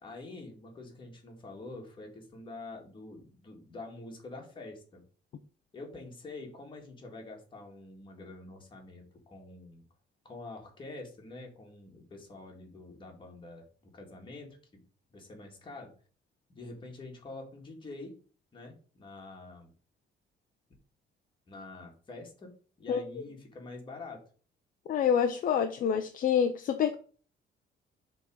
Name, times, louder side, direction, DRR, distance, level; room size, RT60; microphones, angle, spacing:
voice 1, 0.0-5.0 5.7-9.8 10.2-14.8 15.1-15.9 16.5-18.2 18.5-19.7 21.5-22.5 22.8-24.2, left 2 dB, 25° left, 1 dB, 2.0 m, -46 dB
voice 2, 24.9-26.9, left 8 dB, 45° left, 6 dB, 0.6 m, -27 dB
7.0 x 3.8 x 6.2 m, 0.41 s
cardioid pair, 175°, 19 cm